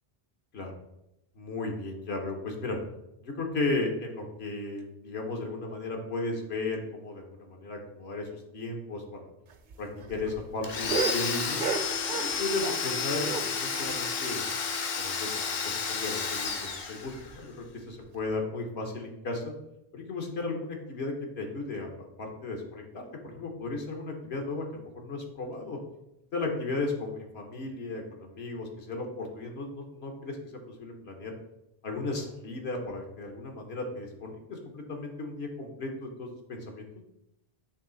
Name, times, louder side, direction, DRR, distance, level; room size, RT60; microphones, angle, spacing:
voice 1, 1.4-2.8 3.2-9.3 9.8-11.6 12.1-14.4 14.9-19.5 19.9-25.8 26.3-30.4 30.7-31.3 31.8-36.9, left 3 dB, 80° left, 2 dB, 1.2 m, -35 dB
sound 1, 9.5-12.9 13.2-15.2 15.5-15.6 15.9-16.0 16.4-16.5 17.1-17.4 18.2-18.3, right 5 dB, 55° right, 0.7 m, -35 dB
Domestic sounds home sounds, 10.6-17.4, left 5 dB, 65° left, 0.9 m, -31 dB
8.2 x 3.1 x 3.9 m, 0.87 s
omnidirectional pair, 1.0 m